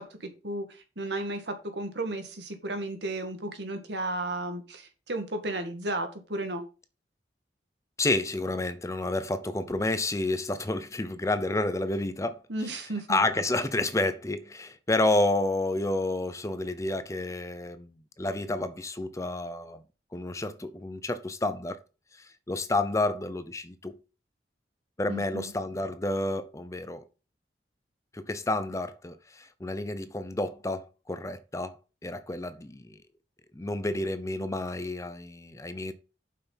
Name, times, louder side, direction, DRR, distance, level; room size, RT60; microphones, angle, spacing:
voice 1, 0.0-6.6 12.5-13.2 25.1-25.5, right 2 dB, 80° right, 2.0 m, -34 dB
voice 2, 8.0-12.4 13.1-19.8 20.1-21.8 22.1-24.0 25.0-27.0 28.1-31.8 32.0-33.0 33.5-35.9, left 2 dB, 20° left, 0.6 m, -30 dB
7.3 x 5.8 x 5.7 m
head